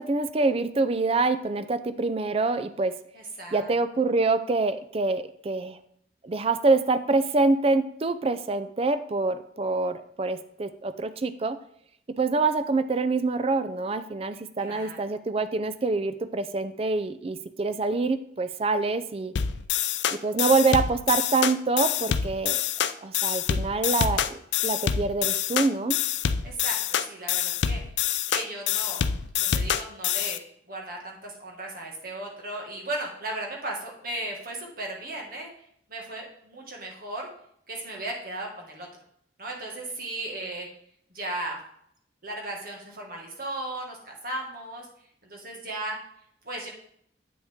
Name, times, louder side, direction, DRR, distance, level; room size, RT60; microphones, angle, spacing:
voice 1, 0.0-2.9 3.5-5.8 6.2-11.6 12.2-19.3 20.1-22.6 23.0-26.0, right 3 dB, 35° right, 11 dB, 0.4 m, -26 dB
voice 2, 3.2-3.7 14.6-15.0 26.4-27.8 28.3-29.0 29.4-30.4 30.7-35.5 35.9-37.3 37.7-38.9 39.4-40.7 41.1-41.6 42.2-44.9 45.2-46.0 46.4-46.7, right 2 dB, 55° right, 0 dB, 1.9 m, -36 dB
sound 1, 19.4-30.4, left 9 dB, 80° left, 0.4 m, -26 dB
8.7 x 6.2 x 3.6 m, 0.70 s
head